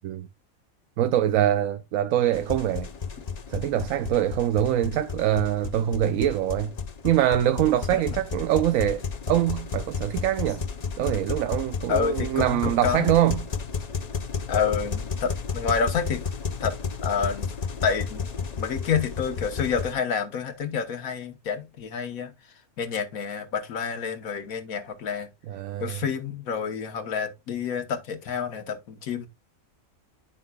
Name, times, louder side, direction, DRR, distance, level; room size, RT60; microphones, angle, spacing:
voice 1, 1.0-2.9 3.5-6.7 7.0-10.6 11.0-13.5 25.5-26.0, right 11 dB, 75° right, 1.0 m, -24 dB
sound 1, 2.3-19.9, left 5 dB, 45° left, 0.5 m, -32 dB
voice 2, 11.9-13.1 14.5-16.2 16.6-17.5 17.8-18.2 18.6-22.3 22.8-25.3 25.8-29.3, left 6 dB, 80° left, 1.4 m, -28 dB
9.8 x 5.7 x 2.2 m
omnidirectional pair, 1.4 m